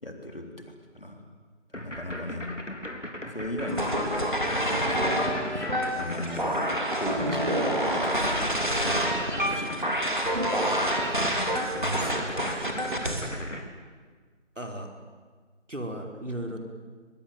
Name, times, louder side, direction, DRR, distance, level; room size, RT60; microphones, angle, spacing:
voice 1, 0.0-1.2 1.7-2.4 3.3-4.4 4.6-6.7 7.0-8.4 8.8-9.1 9.4-9.9, left 1 dB, 50° left, 4 dB, 3.7 m, -37 dB
sound 1, 1.7-13.6, left 1 dB, 85° left, 4.0 m, -37 dB
sound 2, 3.7-13.3, equal, 40° right, 3.2 m, -27 dB
voice 2, 11.7-12.6 14.5-14.9 15.7-16.6, right 1 dB, 90° right, 3 dB, 4.8 m, -36 dB
22.5 x 22.0 x 9.2 m, 1.5 s
figure-of-eight pair, 175°, 36 cm